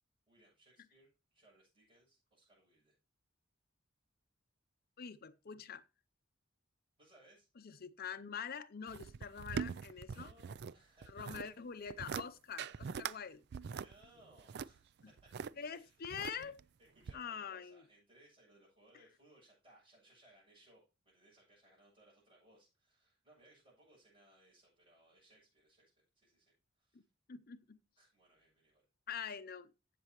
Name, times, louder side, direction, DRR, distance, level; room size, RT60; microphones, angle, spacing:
voice 1, 0.3-3.0 7.0-7.5 9.9-11.6 13.7-14.9 15.2-16.0 16.3-16.5 16.8-27.1 28.0-28.8, right 1 dB, 30° right, 7.4 m, -66 dB
voice 2, 5.0-5.8 7.6-10.3 11.1-13.4 15.6-16.5 17.1-17.8 26.9-27.0 27.3-27.8 29.1-29.7, left 7 dB, 50° left, 0.6 m, -45 dB
sound 1, 8.9-10.7 11.0-11.5 11.9-12.3 12.6-13.2 13.5-15.5 16.0-16.6 17.1-17.2, right 6 dB, 55° right, 0.4 m, -42 dB
15.5 x 6.8 x 3.0 m
head